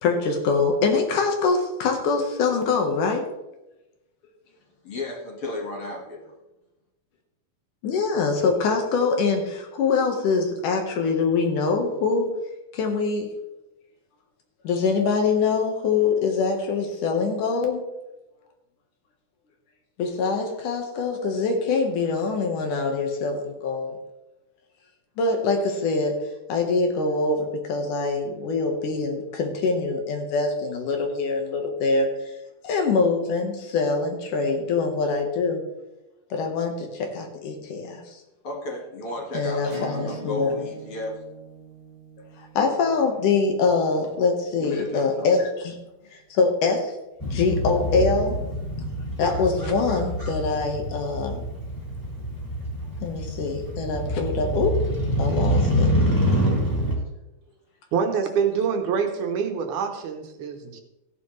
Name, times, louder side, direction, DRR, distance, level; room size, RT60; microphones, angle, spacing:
voice 1, 0.0-3.2 7.8-12.3 12.7-13.3 14.6-17.8 20.0-24.0 25.2-26.2 26.5-32.1 32.6-35.6 36.3-38.2 39.3-40.5 42.5-45.8 46.3-46.9 47.2-48.4 49.2-51.4 53.0-54.9 55.2-55.9, left 4 dB, 70° left, 3 dB, 2.9 m, -24 dB
voice 2, 4.8-6.3 38.4-41.2 44.6-45.3, left 1 dB, 45° left, -1 dB, 2.4 m, -34 dB
Acoustic guitar / Strum, 39.7-44.9, right 5 dB, 40° right, 2.4 m, -43 dB
Motorcycle, 47.2-57.0, equal, 10° left, 1.8 m, -26 dB
voice 3, 57.9-60.8, right 6 dB, 70° right, 5 dB, 2.4 m, -25 dB
15.0 x 10.0 x 3.2 m, 0.95 s
omnidirectional pair, 3.8 m